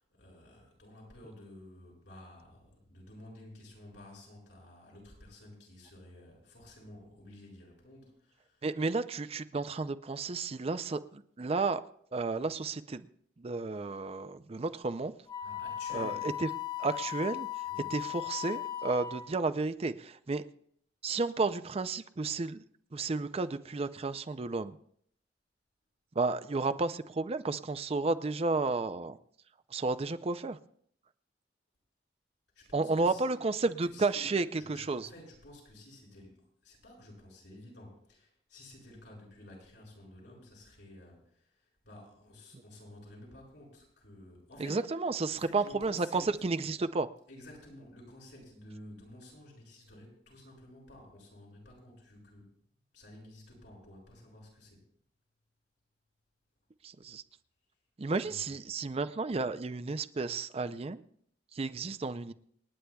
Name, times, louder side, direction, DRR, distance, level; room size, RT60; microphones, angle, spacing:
voice 1, 0.0-8.7 15.4-16.2 17.7-17.9 32.5-44.8 45.3-46.3 47.3-52.5 52.9-54.8 58.2-58.5, left 1 dB, 80° left, -2 dB, 6.3 m, -52 dB
voice 2, 8.6-11.8 12.1-13.1 13.4-15.1 15.9-16.5 16.8-17.5 17.9-20.4 21.0-22.6 22.9-24.8 26.2-29.2 29.7-30.6 32.7-35.1 44.6-47.1 56.8-57.2 58.0-61.0 61.5-62.3, right 3 dB, 35° right, 12 dB, 0.5 m, -32 dB
Wind instrument woodwind instrument, 15.3-19.4, left 12 dB, 30° left, 1.4 m, -37 dB
28.0 x 9.9 x 2.3 m, 0.64 s
head